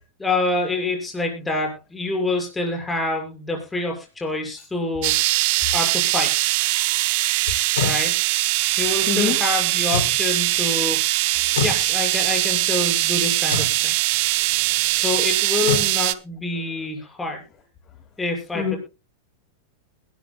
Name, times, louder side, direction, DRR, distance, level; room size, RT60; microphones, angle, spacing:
voice 1, 0.2-5.1 5.7-6.3 7.8-8.1 8.8-11.0 11.6-13.9 14.9-17.4 18.2-18.8, left 2 dB, 10° left, 2 dB, 6.5 m, -26 dB
sound 1, 5.0-16.1, right 20 dB, 60° right, 0.7 m, -21 dB
sound 2, 7.5-8.0 9.9-10.2 11.5-11.8 13.5-13.7 15.7-15.9, left 6 dB, 85° left, 6.0 m, -25 dB
voice 2, 9.1-9.4 11.4-11.6 14.1-15.0 15.6-15.7 18.5-18.7, left 8 dB, 30° left, 5 dB, 2.3 m, -29 dB
21.0 x 12.5 x 2.3 m, 0.29 s
hypercardioid pair, 120°, 0 cm